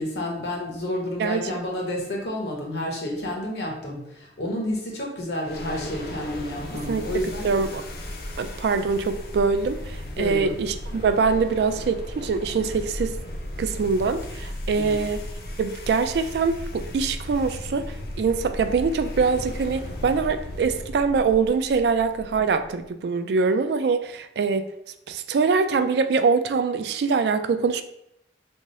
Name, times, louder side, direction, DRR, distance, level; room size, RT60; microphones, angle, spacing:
voice 1, 0.0-7.5 10.1-10.5 14.7-15.0, left 1 dB, 75° left, -1 dB, 1.0 m, -30 dB
sound 1, 5.4-22.8, left 1 dB, 55° left, 0.5 m, -36 dB
voice 2, 6.7-7.1 7.4-7.8 8.4-13.1 13.6-15.2 15.6-24.7 25.1-27.8, right 5 dB, 70° right, 9 dB, 0.3 m, -23 dB
3.5 x 2.0 x 4.1 m, 0.80 s
head